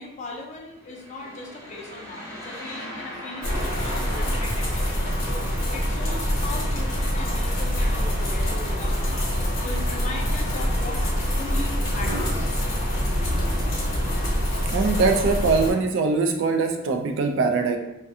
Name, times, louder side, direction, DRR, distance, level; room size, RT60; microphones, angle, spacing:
voice 1, 0.0-5.4 5.7-9.3 9.6-11.0 11.4-12.5, left 2 dB, 35° left, -1 dB, 0.4 m, -38 dB
sound 1, 0.8-6.2, equal, 15° right, 0.5 m, -40 dB
sound 2, 3.4-15.7, equal, 70° left, 0.8 m, -25 dB
voice 2, 14.7-17.8, right 4 dB, 65° right, 5 dB, 0.3 m, -22 dB
2.3 x 2.2 x 2.6 m, 0.92 s
head